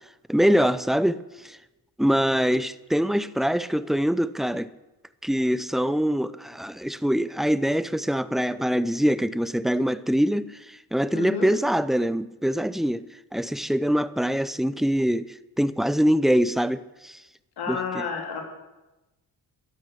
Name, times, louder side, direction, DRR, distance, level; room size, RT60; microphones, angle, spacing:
voice 1, 0.3-1.2 1.4-1.6 2.0-4.7 5.2-13.0 13.3-17.2 17.7-18.0, equal, ahead, 0.4 m, -24 dB
voice 2, 11.1-11.5 17.6-18.4, left 5 dB, 80° left, 3.1 m, -30 dB
11.5 x 11.0 x 7.4 m
cardioid pair, 110°, 38 cm